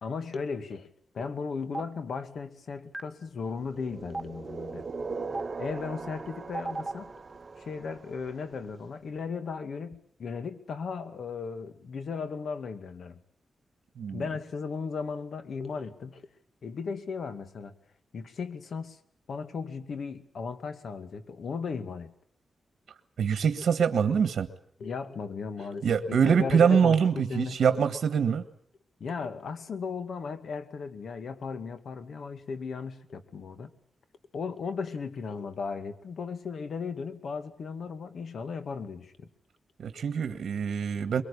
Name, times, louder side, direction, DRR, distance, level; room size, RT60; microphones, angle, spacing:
voice 1, 0.0-0.9 1.1-4.9 5.6-7.1 7.6-13.2 14.1-16.3 16.6-17.7 18.1-19.0 19.3-22.1 24.8-27.6 29.0-33.7 34.3-39.3, left 5 dB, 70° left, 10 dB, 2.2 m, -36 dB
Stream, 1.7-1.8 2.9-3.0 4.1-4.2 5.3-5.4 6.5-6.9, right 2 dB, 20° right, 1.6 m, -32 dB
sound 1, 3.6-8.5, right 4 dB, 45° right, 1.5 m, -40 dB
voice 2, 23.2-24.5 25.8-28.4 39.8-41.2, right 7 dB, 75° right, 9 dB, 1.5 m, -24 dB
23.5 x 23.0 x 8.5 m, 0.62 s
cardioid pair, 85°, 0 cm